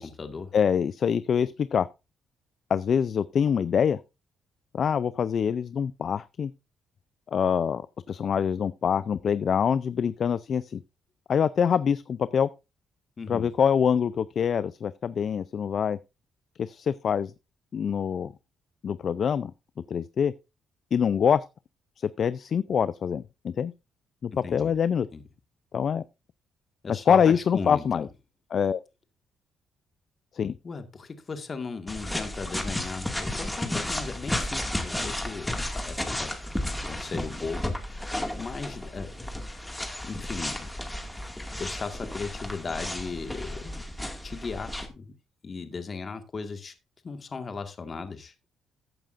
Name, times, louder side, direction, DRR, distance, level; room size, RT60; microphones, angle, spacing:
voice 1, 0.0-0.5 13.2-13.5 24.3-24.7 25.1-25.2 26.8-28.1 30.6-36.3 36.9-39.1 40.0-40.7 41.5-45.1 45.4-46.7 47.0-48.3, left 4 dB, 40° left, 1.8 m, -37 dB
voice 2, 0.5-1.9 2.7-4.0 4.7-6.5 7.3-7.8 8.1-10.8 11.3-12.5 13.3-16.0 16.6-17.3 17.7-18.3 18.8-19.5 19.9-20.3 20.9-21.4 22.0-23.7 24.2-25.1 25.7-26.0 26.9-28.1 28.5-28.8 30.3-30.6, left 7 dB, 55° left, 0.4 m, -25 dB
sound 1, 31.9-44.9, left 1 dB, 10° left, 2.1 m, -33 dB
14.0 x 8.9 x 2.6 m
cardioid pair, 90°, 0 cm